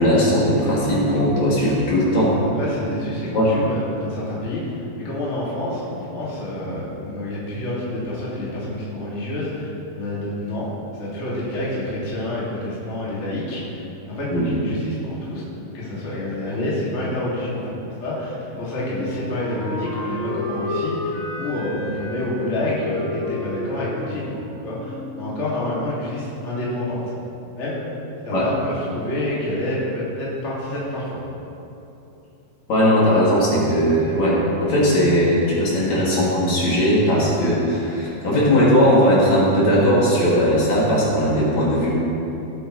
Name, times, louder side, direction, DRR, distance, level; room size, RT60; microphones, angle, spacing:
voice 1, 0.0-2.4 3.3-3.6 14.3-14.5 28.3-28.5 32.7-41.9, equal, 50° left, -7 dB, 3.4 m, -18 dB
voice 2, 2.6-9.7 9.9-10.7 11.0-13.8 14.1-15.4 15.7-21.1 21.4-24.3 24.6-27.0 27.6-27.8 28.2-31.2, left 1 dB, 25° left, -8 dB, 1.9 m, -28 dB
Wind instrument woodwind instrument, 18.5-25.3, left 2 dB, 70° left, 4.4 m, -31 dB
18.5 x 8.2 x 3.2 m, 2.9 s
omnidirectional pair, 4.5 m